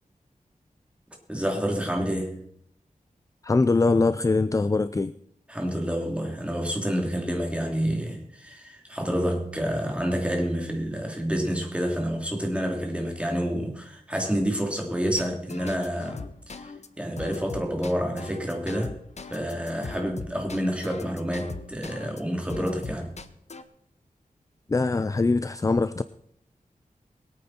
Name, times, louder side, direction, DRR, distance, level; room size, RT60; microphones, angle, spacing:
voice 1, 1.3-2.4 5.5-16.7 17.0-19.0 19.3-23.1, equal, 10° right, 3.1 m, -28 dB
voice 2, 3.4-5.1 24.7-26.0, left 3 dB, 25° left, 0.4 m, -22 dB
sound 1, 15.2-22.2 22.5-23.6, left 4 dB, 50° left, 0.9 m, -40 dB
22.0 x 8.8 x 4.4 m
wide cardioid pair, 100°, 15 cm